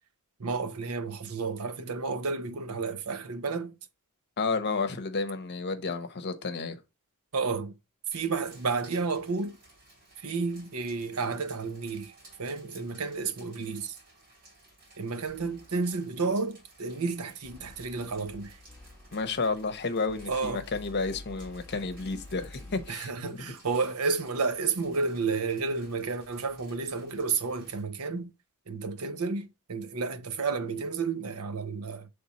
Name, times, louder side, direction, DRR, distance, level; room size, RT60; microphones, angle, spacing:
voice 1, 0.4-3.7 7.3-7.7 8.1-9.6 10.2-12.1 12.4-14.0 15.0-18.6 20.3-20.6 22.9-28.3 28.7-32.1, right 4 dB, 75° right, 0.8 m, -31 dB
voice 2, 4.4-6.8 19.1-23.5, left 4 dB, 50° left, 0.9 m, -31 dB
sound 1, 8.1-27.8, right 2 dB, 45° right, 3.5 m, -57 dB
sound 2, 15.3-16.0 17.4-22.9, left 2 dB, 5° left, 0.9 m, -49 dB
7.0 x 3.4 x 4.2 m
head